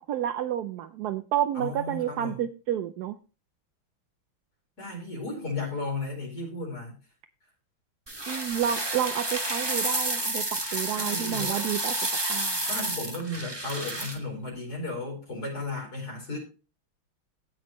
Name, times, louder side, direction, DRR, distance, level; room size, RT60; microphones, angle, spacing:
voice 1, 0.1-3.2 8.3-11.9 12.2-12.6, right 10 dB, 75° right, 10 dB, 0.9 m, -30 dB
voice 2, 1.5-2.4 4.8-7.0 10.9-11.7 12.6-16.4, left 2 dB, 50° left, 0 dB, 5.0 m, -34 dB
sound 1, 8.1-14.2, right 2 dB, 15° right, 1.1 m, -30 dB
17.0 x 6.3 x 3.0 m, 0.34 s
omnidirectional pair, 2.2 m